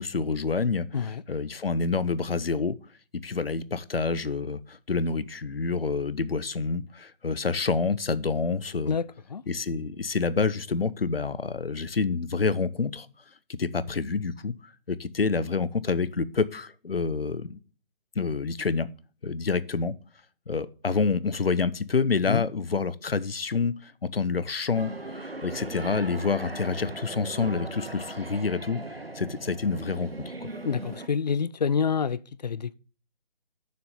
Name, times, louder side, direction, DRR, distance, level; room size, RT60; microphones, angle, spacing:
voice 1, 0.0-0.9 1.3-2.8 3.2-9.0 9.5-13.1 13.6-14.5 14.9-17.6 18.2-18.9 19.2-19.9 20.5-30.5, left 4 dB, 80° left, 0.8 m, -28 dB
voice 2, 8.9-9.4 22.3-22.4 30.6-32.7, left 6 dB, 45° left, 0.4 m, -28 dB
sound 1, 24.7-31.1, right 2 dB, 90° right, 1.3 m, -38 dB
6.9 x 6.6 x 6.8 m
figure-of-eight pair, 140°, 29 cm